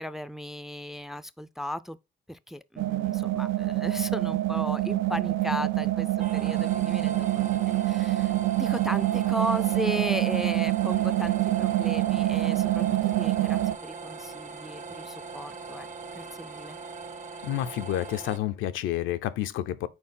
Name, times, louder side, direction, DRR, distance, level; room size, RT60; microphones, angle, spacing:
voice 1, 0.0-2.0 2.3-8.3 8.6-15.9 16.1-16.8, left 1 dB, ahead, 0.4 m, -36 dB
sound 1, 2.8-13.8, right 16 dB, 80° right, 0.5 m, -26 dB
sound 2, 6.2-18.4, right 4 dB, 35° right, 1.0 m, -41 dB
voice 2, 17.4-19.9, left 12 dB, 90° left, 0.5 m, -29 dB
4.4 x 4.3 x 5.5 m
cardioid pair, 90°, 20 cm